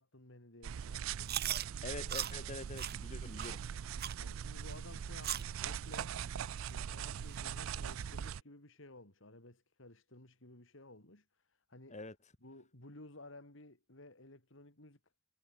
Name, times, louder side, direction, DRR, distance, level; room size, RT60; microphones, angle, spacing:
voice 1, 0.0-1.3 4.2-6.2 6.6-11.2 11.7-12.0 12.4-15.0, left 2 dB, 70° left, 4.4 m, -55 dB
sound 1, 0.6-8.4, right 8 dB, 80° right, 0.4 m, -41 dB
Chewing mastication, 1.2-1.6 2.1-2.3 2.8-2.9 3.4-3.5 4.0-4.2 4.7-4.8 5.2-5.5 5.9-6.0 6.6-6.7 7.3-7.4 8.0-8.1, right 11 dB, 50° right, 1.4 m, -38 dB
voice 2, 1.8-3.6 11.9-12.2, left 2 dB, 35° left, 3.0 m, -45 dB
head